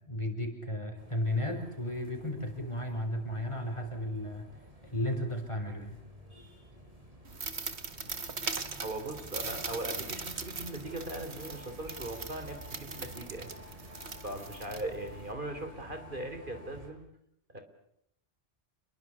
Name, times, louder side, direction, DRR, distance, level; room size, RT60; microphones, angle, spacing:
voice 1, 0.0-4.4 4.8-6.0, left 1 dB, 25° left, 4 dB, 5.7 m, -34 dB
sound 1, 1.0-16.9, equal, 35° right, 7.0 m, -51 dB
sound 2, 7.2-15.3, right 4 dB, 80° right, 2.2 m, -40 dB
voice 2, 8.8-13.5 14.2-17.0 17.5-17.6, right 1 dB, 50° right, 7 dB, 3.5 m, -39 dB
29.0 x 22.0 x 8.5 m, 0.75 s
omnidirectional pair, 1.1 m